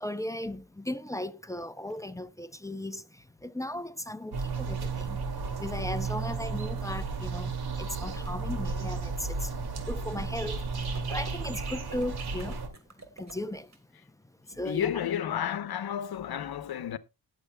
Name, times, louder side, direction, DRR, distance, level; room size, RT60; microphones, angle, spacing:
voice 1, 0.0-3.0 3.4-5.2 5.6-9.5 9.8-10.6 11.1-12.6 13.2-13.7 14.6-14.9, left 1 dB, 10° left, 0.6 m, -36 dB
sound 1, 4.3-12.7, right 4 dB, 75° right, 2.4 m, -33 dB
sound 2, 10.7-13.8, right 3 dB, 45° right, 3.2 m, -50 dB
voice 2, 14.6-17.0, left 9 dB, 70° left, 0.9 m, -31 dB
19.5 x 7.7 x 2.2 m
wide cardioid pair, 130°, 38 cm